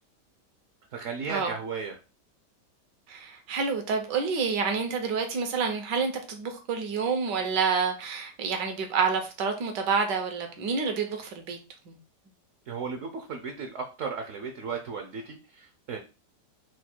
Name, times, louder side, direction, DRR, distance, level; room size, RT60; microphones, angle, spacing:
voice 1, 0.9-1.9 12.7-16.0, right 5 dB, 65° right, 4 dB, 0.8 m, -35 dB
voice 2, 3.1-11.6 11.9-12.0, right 5 dB, 80° right, 5 dB, 1.6 m, -28 dB
4.7 x 2.3 x 4.3 m, 0.32 s
omnidirectional pair, 1.9 m